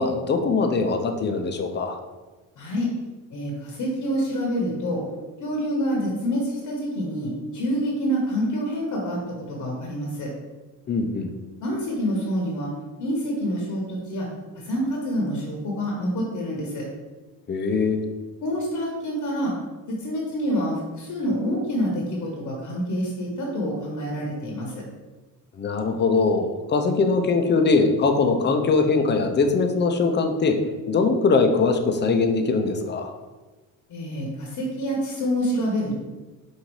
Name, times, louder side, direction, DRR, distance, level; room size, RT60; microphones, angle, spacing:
voice 1, 0.0-2.0 10.9-11.3 17.5-18.0 25.5-30.6 30.9-33.1, left 4 dB, 30° left, 5 dB, 0.5 m, -21 dB
voice 2, 2.6-2.9 3.3-5.0 5.4-10.3 11.6-12.7 13.0-14.3 14.6-16.9 18.4-19.5 19.9-24.8 33.9-36.0, equal, 55° left, -1 dB, 1.0 m, -27 dB
5.2 x 2.7 x 3.1 m, 1.2 s
cardioid pair, 90°, 37 cm